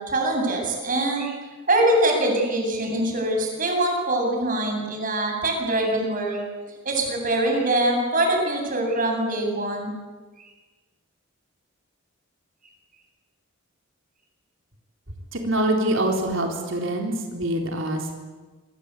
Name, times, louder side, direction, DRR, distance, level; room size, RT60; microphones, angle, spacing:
voice 1, 0.0-1.4 1.7-6.4 6.8-9.9, right 1 dB, 40° right, 2 dB, 7.8 m, -23 dB
voice 2, 15.3-18.1, right 1 dB, 60° right, 2 dB, 4.0 m, -25 dB
26.5 x 26.0 x 8.5 m, 1.3 s
head